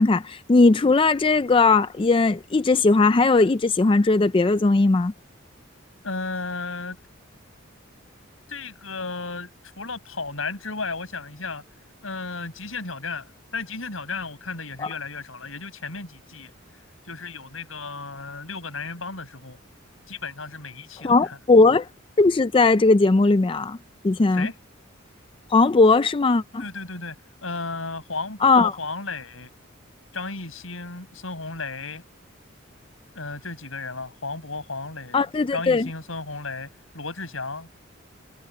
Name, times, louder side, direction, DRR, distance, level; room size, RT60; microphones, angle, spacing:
voice 1, 0.0-5.1 14.8-14.9 21.0-21.9 22.2-23.8 24.0-24.5 25.5-26.6 28.4-28.8 35.1-35.9, left 3 dB, 25° left, 0.4 m, -18 dB
voice 2, 6.0-7.0 8.5-9.5 9.8-11.6 12.0-16.5 17.1-19.6 20.1-21.4 24.3-24.5 26.6-27.2 27.4-29.5 30.1-32.0 33.1-35.2 35.5-36.7 36.9-37.7, left 3 dB, 80° left, 7.0 m, -34 dB
head